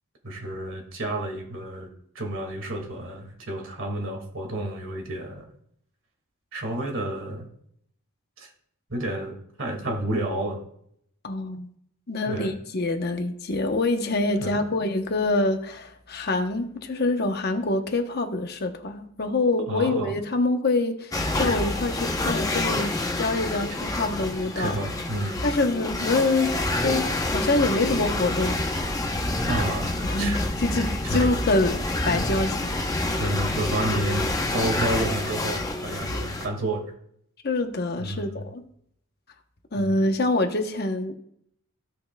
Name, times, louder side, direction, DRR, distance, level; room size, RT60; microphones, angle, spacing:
voice 1, 0.2-1.9 2.1-5.5 6.5-7.5 8.4-8.5 8.9-10.6 12.2-12.5 14.4-14.6 19.7-20.2 23.7-23.8 24.6-25.5 29.5-30.4 30.8-31.3 33.1-36.9 38.0-38.5 39.8-40.0, right 1 dB, 60° right, 2.1 m, -30 dB
voice 2, 11.2-11.7 12.1-24.8 25.4-28.6 30.0-31.8 32.0-32.7 37.4-38.6 39.7-41.1, left 2 dB, 45° left, 0.9 m, -25 dB
sound 1, 21.1-36.5, left 2 dB, 15° left, 0.7 m, -27 dB
16.0 x 5.7 x 2.3 m
head